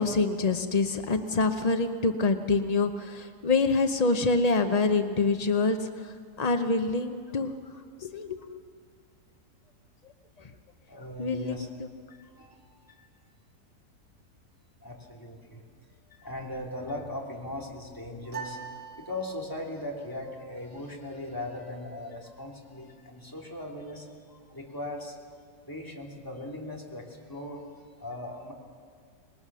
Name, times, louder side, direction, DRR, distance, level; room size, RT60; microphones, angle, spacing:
voice 1, 0.0-6.1 6.4-7.5 8.0-8.4 11.2-11.9, left 3 dB, 75° left, 7 dB, 0.3 m, -26 dB
voice 2, 10.9-11.7 12.1-13.1 14.8-15.6 16.1-25.2 25.7-27.6 28.0-28.5, left 1 dB, 10° left, -2 dB, 2.9 m, -39 dB
sound 1, 18.3-19.8, right 6 dB, 75° right, 4.4 m, -41 dB
25.5 x 20.0 x 6.2 m, 2.1 s
omnidirectional pair, 1.9 m